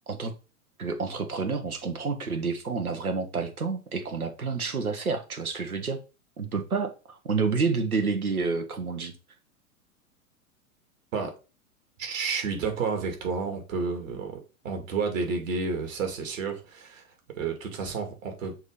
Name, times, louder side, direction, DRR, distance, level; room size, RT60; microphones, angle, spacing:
voice 1, 0.8-6.0 6.4-9.1, right 4 dB, 90° right, 1.3 m, -29 dB
voice 2, 12.0-17.0 17.4-18.6, right 4 dB, 65° right, 2.3 m, -31 dB
6.3 x 2.9 x 5.1 m
figure-of-eight pair, 100°, 42 cm